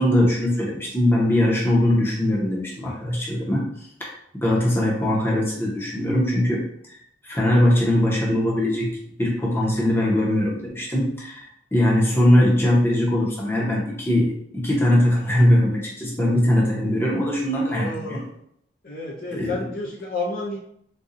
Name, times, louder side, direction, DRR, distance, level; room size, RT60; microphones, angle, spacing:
voice 1, 0.0-3.7 4.0-7.0 7.2-8.9 9.2-18.2 19.3-19.5, left 1 dB, 15° left, -5 dB, 0.8 m, -21 dB
voice 2, 17.6-18.4 18.8-20.6, left 2 dB, 50° left, -3 dB, 0.6 m, -31 dB
4.0 x 2.3 x 2.5 m, 0.70 s
head